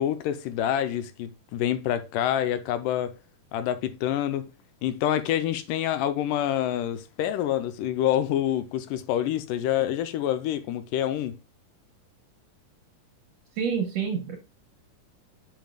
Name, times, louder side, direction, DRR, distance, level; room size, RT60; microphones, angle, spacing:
voice 1, 0.0-3.1 3.5-4.5 4.8-11.4, left 11 dB, 85° left, 2.2 m, -27 dB
voice 2, 13.6-14.4, right 6 dB, 70° right, 1.7 m, -27 dB
8.8 x 5.5 x 2.2 m
omnidirectional pair, 3.9 m